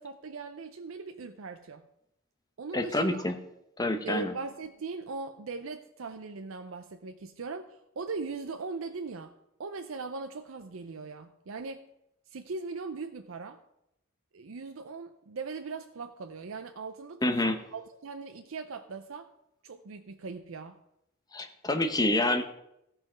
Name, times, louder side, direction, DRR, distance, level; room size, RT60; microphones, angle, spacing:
voice 1, 0.0-1.8 2.6-3.2 4.0-11.8 12.3-13.6 14.3-19.3 19.6-20.8, right 4 dB, 70° right, 6 dB, 0.6 m, -40 dB
voice 2, 2.7-3.4 3.8-4.3 17.2-17.6 21.3-22.4, left 1 dB, 20° left, 7 dB, 0.8 m, -27 dB
15.0 x 5.7 x 5.0 m, 0.82 s
head